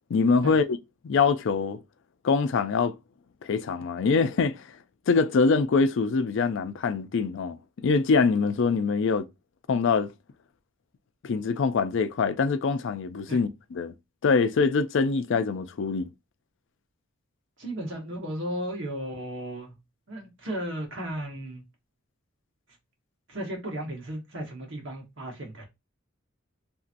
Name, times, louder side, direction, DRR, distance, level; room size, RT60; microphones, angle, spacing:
voice 1, 0.1-0.8 1.0-1.8 2.2-3.0 3.4-4.6 5.1-9.3 9.7-10.1 11.2-13.9 14.2-16.1, left 4 dB, 60° left, 0.4 m, -24 dB
voice 2, 17.6-19.8 20.1-21.6 23.3-25.7, right 1 dB, 60° right, 1.2 m, -35 dB
3.0 x 2.6 x 2.5 m
head